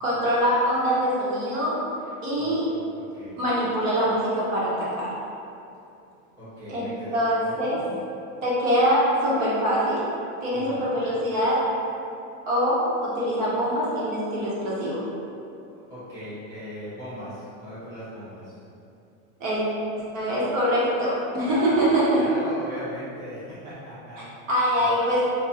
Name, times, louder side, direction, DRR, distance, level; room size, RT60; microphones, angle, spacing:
voice 1, 0.0-1.8 2.2-2.6 3.4-5.1 6.7-7.8 8.4-10.0 10.4-11.6 12.5-15.0 19.4-19.6 20.1-22.3 24.5-25.2, equal, 70° right, -7 dB, 1.2 m, -24 dB
voice 2, 1.9-2.6 3.1-3.4 6.4-8.0 10.5-10.9 15.9-18.6 21.4-24.3 24.8-25.0, equal, 10° right, -15 dB, 0.9 m, -39 dB
4.0 x 2.3 x 2.8 m, 2.6 s
supercardioid pair, 180°, 39 cm